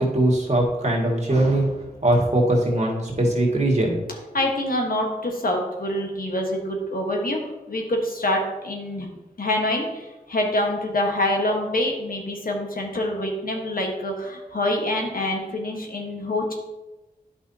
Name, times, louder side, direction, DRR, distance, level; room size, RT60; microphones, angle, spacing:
voice 1, 0.0-4.0, right 1 dB, 45° right, -2 dB, 2.0 m, -21 dB
voice 2, 4.3-7.4 7.7-9.1 9.4-16.5, left 1 dB, 65° left, 1 dB, 1.4 m, -26 dB
9.6 x 5.5 x 2.8 m, 1.1 s
cardioid pair, 45°, 16 cm